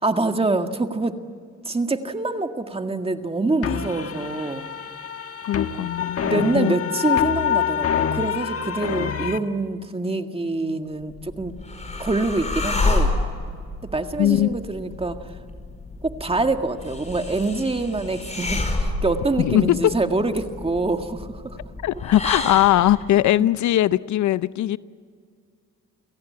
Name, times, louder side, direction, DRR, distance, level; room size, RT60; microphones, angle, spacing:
voice 1, 0.0-1.2 1.7-4.7 6.2-11.5 12.0-13.1 13.8-15.2 16.0-21.6 23.4-23.5, right 2 dB, 20° right, 1.9 m, -25 dB
sound 1, 3.6-9.4, left 8 dB, 50° left, 1.5 m, -26 dB
voice 2, 5.4-6.7 14.2-14.6 19.4-19.9 21.8-24.8, left 13 dB, 70° left, 0.6 m, -20 dB
sound 2, 11.0-23.1, left 2 dB, 25° left, 5.2 m, -29 dB
29.5 x 17.5 x 8.7 m
cardioid pair, 90°, 30 cm